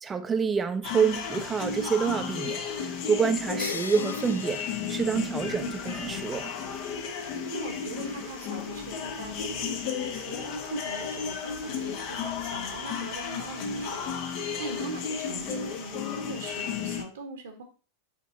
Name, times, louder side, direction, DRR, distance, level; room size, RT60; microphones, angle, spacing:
voice 1, 0.0-2.6 3.1-6.5, right 6 dB, 15° right, 0.7 m, -27 dB
sound 1, 0.8-17.0, left 6 dB, 45° left, 0.9 m, -33 dB
sound 2, 3.6-5.7, left 5 dB, 70° left, 0.4 m, -39 dB
voice 2, 7.2-17.6, right 3 dB, 60° right, 1.2 m, -41 dB
7.5 x 4.0 x 4.0 m
figure-of-eight pair, 90°, 0 cm